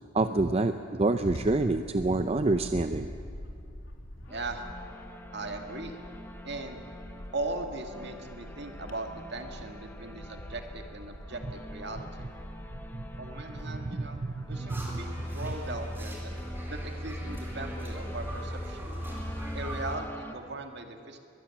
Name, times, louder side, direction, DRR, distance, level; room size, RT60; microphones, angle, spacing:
voice 1, 0.1-3.1 13.9-15.0, right 2 dB, 30° right, 9 dB, 0.6 m, -27 dB
Bird / Wind, 1.2-19.5, equal, 85° left, 2.7 m, -46 dB
sound 1, 4.3-20.4, left 1 dB, 10° left, 1.3 m, -47 dB
voice 2, 4.3-4.7 5.3-6.0 6.4-6.8 7.3-12.1 13.2-16.3 16.7-19.0 19.5-21.2, right 2 dB, 60° right, 4 dB, 2.1 m, -39 dB
sound 2, 14.7-20.0, equal, 10° right, 3.3 m, -37 dB
22.0 x 20.5 x 7.3 m, 2.4 s
head